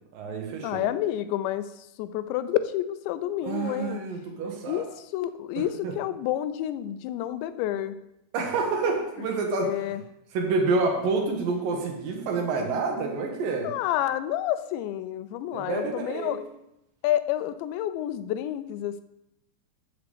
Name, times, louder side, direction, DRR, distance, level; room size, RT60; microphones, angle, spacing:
voice 1, 0.1-0.8 3.4-4.8 5.6-5.9 8.3-9.7 10.3-13.7 15.5-16.4, right 3 dB, 65° right, 1 dB, 2.6 m, -28 dB
voice 2, 0.6-4.0 4.7-8.0 9.5-10.0 13.6-16.4 17.0-19.0, left 12 dB, 85° left, 12 dB, 2.8 m, -29 dB
14.0 x 7.0 x 3.4 m, 0.85 s
omnidirectional pair, 5.1 m